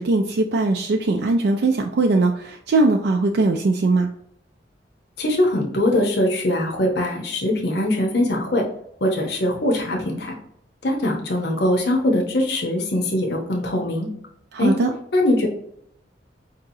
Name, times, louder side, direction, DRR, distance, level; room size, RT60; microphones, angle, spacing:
voice 1, 0.0-4.1 14.5-14.9, right 2 dB, 60° right, 3 dB, 0.4 m, -20 dB
voice 2, 5.2-8.6 9.0-10.4 10.8-14.1 14.6-14.7 15.1-15.5, left 1 dB, 60° left, 0 dB, 0.8 m, -21 dB
4.7 x 2.8 x 2.7 m, 0.72 s
head